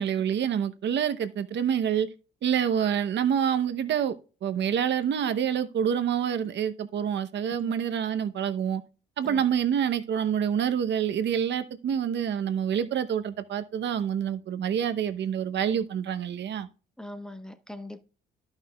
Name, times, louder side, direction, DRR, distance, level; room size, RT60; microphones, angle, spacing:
voice 1, 0.0-2.1 2.4-4.1 4.4-8.8 9.2-16.7, right 8 dB, 65° right, 0.8 m, -27 dB
voice 2, 7.5-7.8 9.2-9.5 15.7-15.8 17.0-18.0, left 1 dB, 5° left, 1.0 m, -41 dB
14.0 x 5.7 x 2.3 m
cardioid pair, 90°, 20 cm